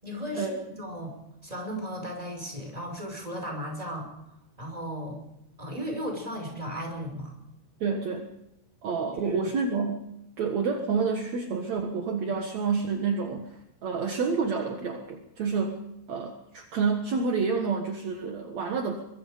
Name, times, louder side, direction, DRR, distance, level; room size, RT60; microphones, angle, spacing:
voice 1, 0.0-1.2 1.4-4.1 4.6-5.2 5.6-7.3 9.2-9.5, equal, 10° right, 2 dB, 5.2 m, -35 dB
voice 2, 7.8-8.2 8.8-10.0 10.4-15.8 16.1-19.0, right 5 dB, 55° right, 3 dB, 2.0 m, -29 dB
23.5 x 23.5 x 5.2 m, 0.85 s
omnidirectional pair, 5.4 m